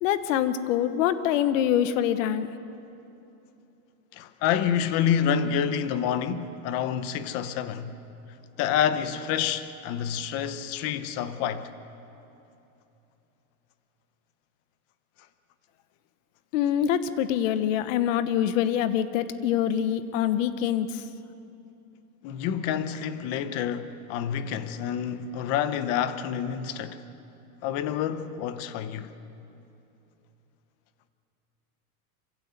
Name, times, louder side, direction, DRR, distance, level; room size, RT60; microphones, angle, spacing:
voice 1, 0.0-2.5 16.5-21.0, left 10 dB, 60° left, 1.1 m, -25 dB
voice 2, 4.1-8.0 8.6-11.7 22.2-27.0 27.6-29.1, left 8 dB, 35° left, 0.9 m, -28 dB
26.5 x 15.5 x 8.1 m
supercardioid pair, 175°, 44 cm